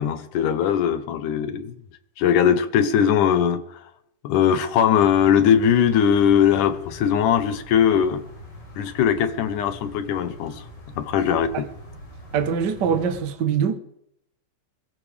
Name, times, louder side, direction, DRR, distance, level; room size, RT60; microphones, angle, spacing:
voice 1, 0.0-1.8 2.2-3.8 4.2-8.2 8.8-10.6 11.0-11.7, left 8 dB, 75° left, 2.5 m, -20 dB
sound 1, 5.0-13.2, equal, 55° left, 7.8 m, -43 dB
voice 2, 12.3-13.8, right 7 dB, 60° right, 1.1 m, -23 dB
23.5 x 15.5 x 3.5 m
omnidirectional pair, 3.7 m